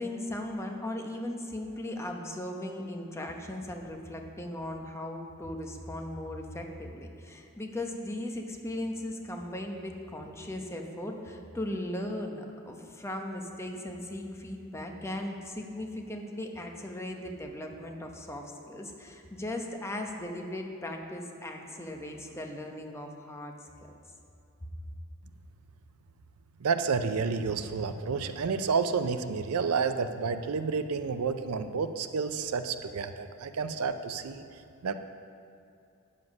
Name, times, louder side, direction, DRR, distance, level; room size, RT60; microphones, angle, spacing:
voice 1, 0.0-23.6 23.8-23.9, left 1 dB, 10° left, 2 dB, 0.9 m, -38 dB
voice 2, 26.6-34.4 34.8-34.9, right 5 dB, 75° right, 10 dB, 0.5 m, -30 dB
9.4 x 7.5 x 6.0 m, 2.5 s
head